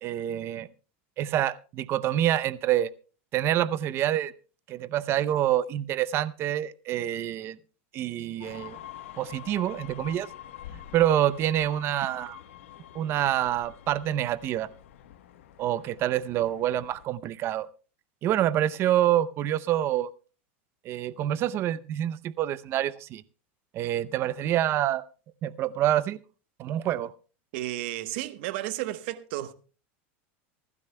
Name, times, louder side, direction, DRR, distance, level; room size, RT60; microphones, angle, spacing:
voice 1, 0.0-0.7 1.2-2.9 3.3-4.3 4.7-7.6 7.9-8.8 9.2-10.3 10.9-12.4 12.9-14.7 15.6-17.7 18.2-20.1 20.8-23.2 23.7-25.0 25.4-26.2 26.6-27.1, right 12 dB, 35° right, 0.6 m, -27 dB
sound 1, 8.4-17.0, left 11 dB, 85° left, 1.1 m, -46 dB
voice 2, 27.5-29.5, right 15 dB, 60° right, 1.0 m, -33 dB
25.0 x 12.0 x 2.2 m
supercardioid pair, 135°, 7 cm